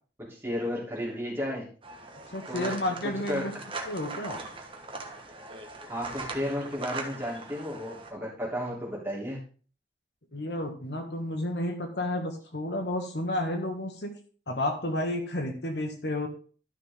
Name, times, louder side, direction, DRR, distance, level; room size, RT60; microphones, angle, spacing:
voice 1, 0.2-1.7 2.5-2.8 3.3-3.5 5.8-9.4, equal, 15° right, -4 dB, 3.3 m, -33 dB
sound 1, 1.8-8.1, right 3 dB, 30° right, 1.3 m, -40 dB
voice 2, 2.3-3.5 3.9-4.4 10.3-14.1 14.5-16.3, left 1 dB, 70° left, 4 dB, 1.6 m, -31 dB
12.0 x 5.8 x 3.6 m, 0.40 s
head